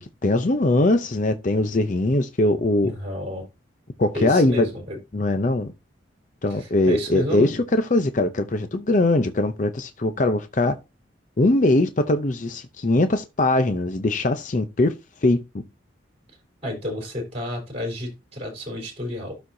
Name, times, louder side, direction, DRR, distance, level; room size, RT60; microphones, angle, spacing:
voice 1, 0.0-2.9 4.0-4.7 5.1-5.7 6.4-10.8 11.4-14.9 15.2-15.4, left 2 dB, 40° left, 0.5 m, -21 dB
voice 2, 2.8-3.4 4.1-5.0 6.5-7.6 16.6-19.3, left 1 dB, 30° right, 3.8 m, -31 dB
12.5 x 4.2 x 2.7 m
head